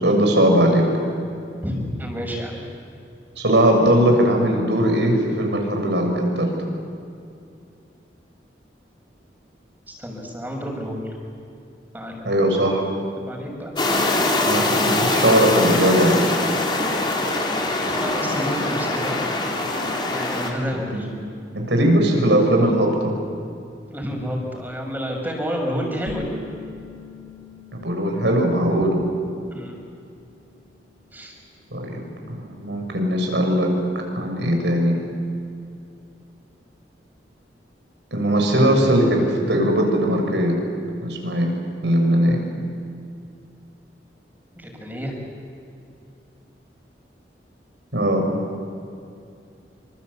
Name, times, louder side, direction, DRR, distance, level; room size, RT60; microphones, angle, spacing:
voice 1, 0.0-0.8 3.4-6.5 12.2-12.8 14.4-16.2 20.7-21.1 21.5-23.1 27.7-29.0 31.7-32.0 32.3-33.7 34.1-35.0 38.1-40.5 41.0-41.5 41.8-42.4 47.9-48.2, equal, 80° right, 2 dB, 6.8 m, -19 dB
voice 2, 1.6-2.6 9.9-11.1 11.9-12.4 13.2-14.3 17.8-19.1 20.1-21.1 23.9-26.4 29.5-29.8 31.1-31.4 44.6-45.2, equal, 10° right, 1 dB, 6.2 m, -30 dB
sound 1, 13.8-20.5, left 2 dB, 25° left, 3.9 m, -23 dB
sound 2, 26.1-31.5, left 4 dB, 50° right, 3.6 m, -43 dB
27.5 x 26.5 x 8.3 m, 2.5 s
head